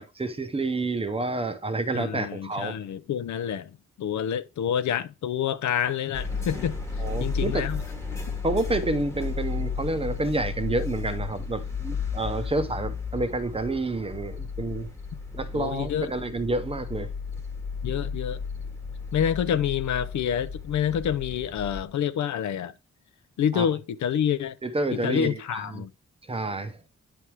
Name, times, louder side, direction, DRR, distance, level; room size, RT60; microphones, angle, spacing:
voice 1, 0.0-2.8 7.0-7.7 8.4-14.9 15.3-17.1 23.5-23.7 24.6-25.8 26.3-26.8, right 2 dB, 20° right, 0.7 m, -29 dB
voice 2, 1.9-3.7 4.0-6.8 7.2-7.8 15.5-16.1 17.8-18.4 19.1-22.7 23.4-24.6 24.9-25.9, left 9 dB, 75° left, 0.6 m, -27 dB
sound 1, 6.1-21.9, left 5 dB, 10° left, 1.1 m, -33 dB
9.8 x 3.5 x 4.6 m
wide cardioid pair, 170°, 29 cm